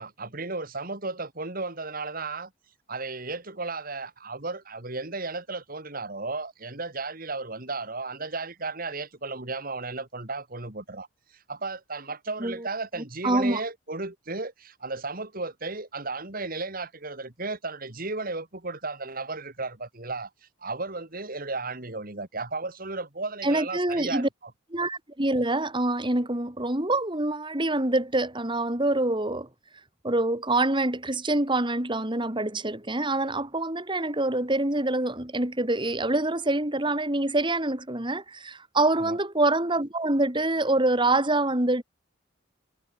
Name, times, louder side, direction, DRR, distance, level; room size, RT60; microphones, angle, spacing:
voice 1, 0.0-2.5 2.9-11.1 11.5-20.3 20.6-24.3 39.0-39.2, right 3 dB, 50° right, 3.0 m, -34 dB
voice 2, 13.2-13.6 23.4-24.3 24.7-29.5 30.0-41.8, right 2 dB, 25° right, 2.9 m, -25 dB
head